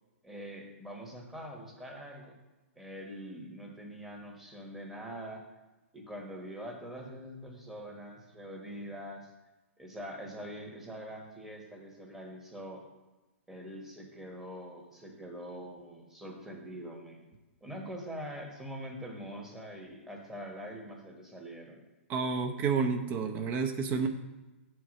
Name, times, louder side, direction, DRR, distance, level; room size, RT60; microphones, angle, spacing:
voice 1, 0.2-2.4 2.8-5.4 5.9-9.3 9.8-12.8 13.5-17.2 17.6-21.8, equal, 5° right, 0 dB, 1.2 m, -44 dB
voice 2, 22.1-24.1, right 5 dB, 25° right, 7 dB, 0.7 m, -30 dB
6.9 x 4.6 x 6.4 m, 1.1 s
hypercardioid pair, 150°, 8 cm